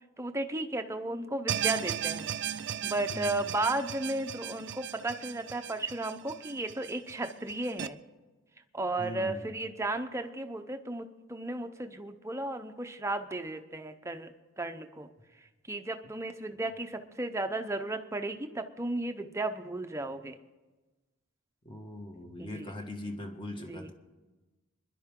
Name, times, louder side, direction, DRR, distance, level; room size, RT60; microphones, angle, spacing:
voice 1, 0.2-2.3 2.8-8.0 8.7-15.1 15.4-20.4 22.4-22.7 23.7-23.9, right 2 dB, 15° right, 6 dB, 0.7 m, -34 dB
sound 1, 1.5-7.9, right 10 dB, 55° right, 0.4 m, -36 dB
voice 2, 9.0-9.4 21.6-23.9, left 1 dB, 25° left, 2 dB, 1.5 m, -40 dB
25.5 x 11.0 x 3.7 m, 1.2 s
head